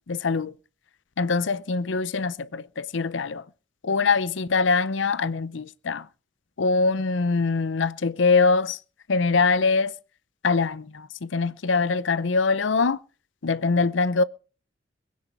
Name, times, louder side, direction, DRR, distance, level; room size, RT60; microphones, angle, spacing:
voice 1, 0.1-0.5 1.2-3.4 3.8-6.1 6.6-8.8 9.1-9.9 10.4-13.0 13.4-14.2, left 4 dB, 90° left, 0.7 m, -23 dB
22.0 x 9.5 x 4.4 m
head